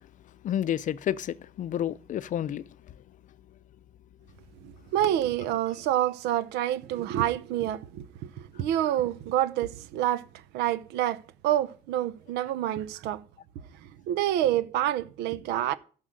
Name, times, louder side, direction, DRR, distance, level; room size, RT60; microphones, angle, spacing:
voice 1, 0.4-2.6, left 10 dB, 50° left, 0.5 m, -30 dB
voice 2, 4.6-10.3 10.5-13.2 13.8-15.7, right 12 dB, 90° right, 0.7 m, -28 dB
11.5 x 6.1 x 6.6 m
cardioid pair, 110°, 17 cm